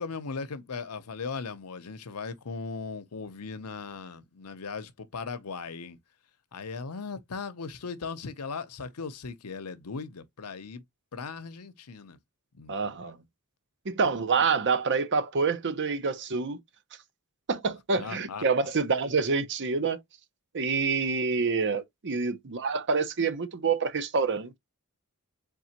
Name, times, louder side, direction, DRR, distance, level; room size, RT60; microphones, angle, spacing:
voice 1, 0.0-6.0 6.5-10.8 11.1-12.2 12.5-12.8 18.0-18.5, left 4 dB, 85° left, 0.8 m, -38 dB
voice 2, 12.7-13.2 13.9-16.6 17.5-20.0 20.5-24.6, right 4 dB, 55° right, 0.7 m, -27 dB
3.8 x 3.7 x 2.9 m
head